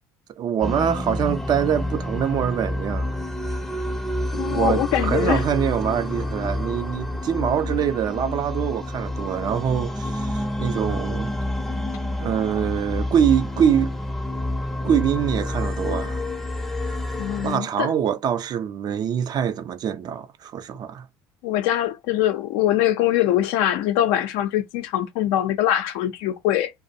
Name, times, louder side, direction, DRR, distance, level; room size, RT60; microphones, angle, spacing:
voice 1, 0.4-3.2 4.3-11.3 12.2-13.9 14.8-16.2 17.4-21.1, right 8 dB, 45° right, 0.4 m, -24 dB
sound 1, 0.6-17.6, left 1 dB, 5° left, 0.6 m, -28 dB
voice 2, 4.3-5.4 17.2-17.9 21.4-26.7, left 12 dB, 75° left, 0.5 m, -23 dB
2.4 x 2.0 x 2.6 m
supercardioid pair, 80°, 10 cm